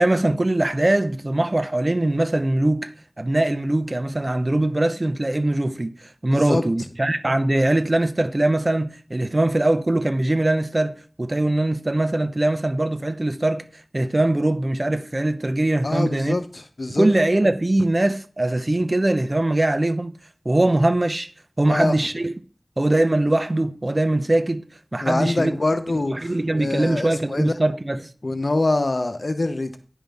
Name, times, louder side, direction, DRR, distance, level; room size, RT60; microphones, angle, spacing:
voice 1, 0.0-2.9 3.2-13.6 13.9-16.4 16.9-20.1 20.4-21.3 21.6-22.3 22.8-24.6 24.9-25.5 26.1-28.1, right 1 dB, 45° right, 0.8 m, -21 dB
voice 2, 6.3-6.6 15.8-17.1 21.7-21.9 25.0-26.3 26.6-27.5 28.2-29.8, left 2 dB, 70° left, 0.8 m, -24 dB
10.0 x 5.3 x 3.4 m
wide cardioid pair, 45°, 0 cm